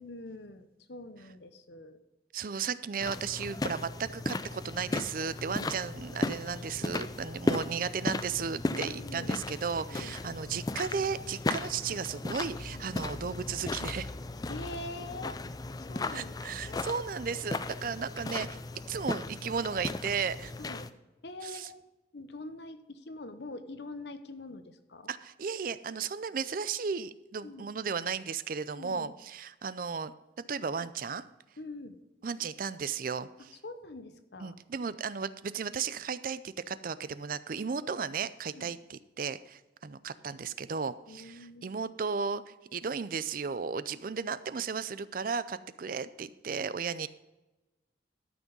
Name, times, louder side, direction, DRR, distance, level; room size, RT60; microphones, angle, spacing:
voice 1, 0.0-2.0 8.7-9.3 9.9-10.2 11.9-12.0 12.7-13.0 14.5-15.4 15.9-16.8 20.6-20.9 21.2-21.8 22.1-25.1 27.4-27.7 28.7-29.2 31.6-32.0 33.6-34.5 38.5-38.7 41.1-41.7, left 2 dB, 65° left, 10 dB, 0.9 m, -44 dB
voice 2, 2.3-14.1 16.1-18.6 18.9-20.5 21.4-21.7 25.1-30.1 30.5-31.2 32.2-33.6 34.4-47.1, right 6 dB, 50° right, 15 dB, 0.4 m, -35 dB
sound 1, 3.0-20.9, left 2 dB, 20° left, 0.4 m, -36 dB
13.0 x 6.1 x 5.3 m, 1.0 s
head